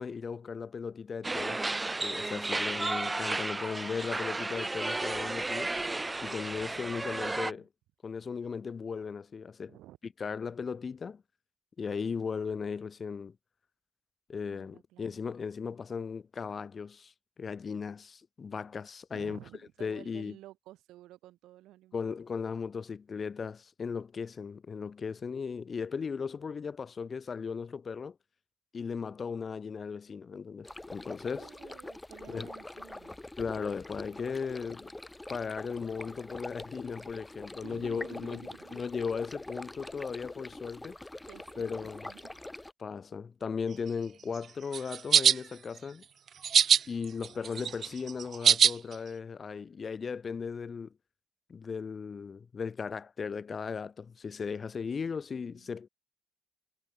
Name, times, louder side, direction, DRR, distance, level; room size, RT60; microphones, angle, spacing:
voice 1, 0.0-1.7 2.0-5.7 6.2-7.7 8.0-9.8 10.2-11.2 11.8-13.4 14.3-17.1 17.4-19.4 19.8-20.4 21.9-28.2 28.7-31.5 32.3-32.5 33.4-34.9 35.3-38.4 38.7-41.0 41.6-42.1 42.8-46.0 46.9-50.9 51.5-55.9, left 5 dB, 40° left, 5.6 m, -37 dB
sound 1, 1.2-7.5, right 2 dB, 20° right, 1.5 m, -33 dB
voice 2, 6.8-7.7 9.7-10.0 14.5-15.2 19.1-22.2 31.4-33.2 37.6-38.8 41.3-42.5 55.3-55.7, right 15 dB, 90° right, 7.4 m, -52 dB
sound 2, 30.6-42.7, left 2 dB, 10° left, 6.0 m, -45 dB
sound 3, 44.7-45.3 46.4-46.8 47.2-48.7, right 8 dB, 55° right, 0.9 m, -21 dB
cardioid pair, 90°, 0 cm